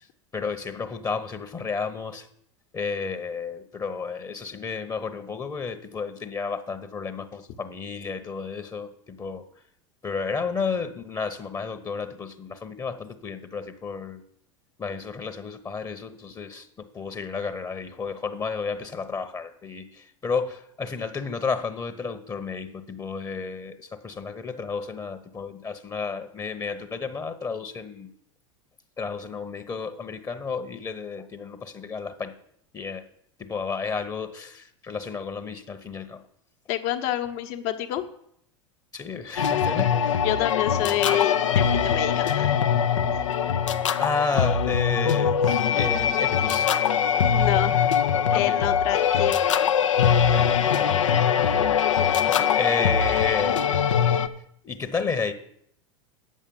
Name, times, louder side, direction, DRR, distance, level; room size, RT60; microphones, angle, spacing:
voice 1, 0.3-2.3 2.7-9.5 10.0-14.2 14.8-28.1 29.0-32.3 32.7-33.1 33.4-36.2 38.9-40.2 44.0-46.8 48.1-48.7 50.3-51.5 52.2-53.8 54.6-55.3, left 5 dB, 20° left, 8 dB, 1.0 m, -32 dB
voice 2, 36.7-38.0 40.2-42.6 47.3-48.0 48.3-49.7, left 12 dB, 55° left, 6 dB, 1.2 m, -28 dB
sound 1, 39.4-54.3, left 8 dB, 80° left, 0.7 m, -22 dB
8.8 x 7.5 x 7.0 m, 0.70 s
hypercardioid pair, 85°, 16 cm